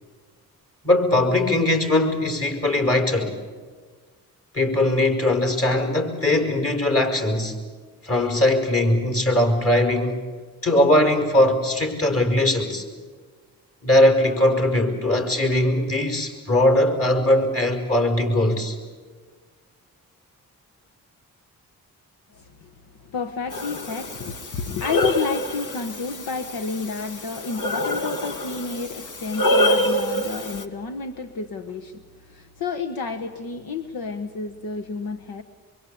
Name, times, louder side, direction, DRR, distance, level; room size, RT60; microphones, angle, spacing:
voice 1, 0.8-3.4 4.5-7.6 8.0-10.2 10.6-12.8 13.8-18.8, left 1 dB, 40° left, 6 dB, 5.7 m, -20 dB
voice 2, 22.3-22.7 23.0-35.4, left 5 dB, 80° left, 8 dB, 1.3 m, -30 dB
Breathing, 23.5-30.6, left 1 dB, 60° left, 2.1 m, -26 dB
25.0 x 23.5 x 8.6 m, 1.5 s
cardioid pair, 65°, 35 cm